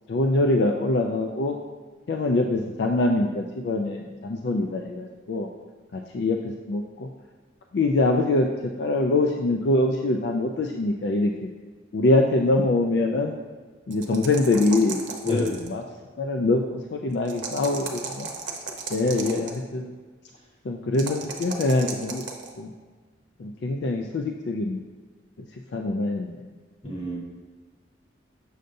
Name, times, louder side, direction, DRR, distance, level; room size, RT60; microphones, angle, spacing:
voice 1, 0.1-1.5 2.1-5.5 5.9-7.1 7.7-8.5 8.8-11.5 11.9-13.3 13.9-15.0 15.2-15.8 16.2-16.6 16.9-18.3 18.9-19.9 20.7-22.2 22.6-22.7 23.4-24.8 25.7-26.3, left 2 dB, 60° left, 2 dB, 0.4 m, -24 dB
sound 1, 13.9-15.8 17.2-19.6 20.9-22.5, right 5 dB, 75° right, 0.8 m, -35 dB
voice 2, 26.8-27.2, left 1 dB, 30° left, -4 dB, 1.2 m, -28 dB
6.5 x 6.5 x 2.6 m, 1.4 s
head